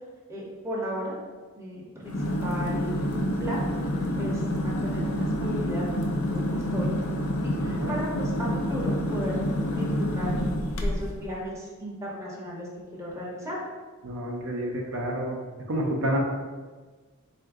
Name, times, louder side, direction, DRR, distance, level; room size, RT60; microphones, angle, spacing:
voice 1, 0.3-1.2 1.6-3.0 3.4-3.6 4.2-5.9 6.2-6.9 7.4-10.3 10.8-13.6, equal, 15° right, -4 dB, 0.7 m, -35 dB
sound 1, 2.0-11.2, equal, 90° left, 0.5 m, -28 dB
voice 2, 14.0-15.4 15.7-16.2, right 1 dB, 65° right, 0 dB, 0.5 m, -29 dB
3.7 x 2.5 x 3.5 m, 1.4 s
head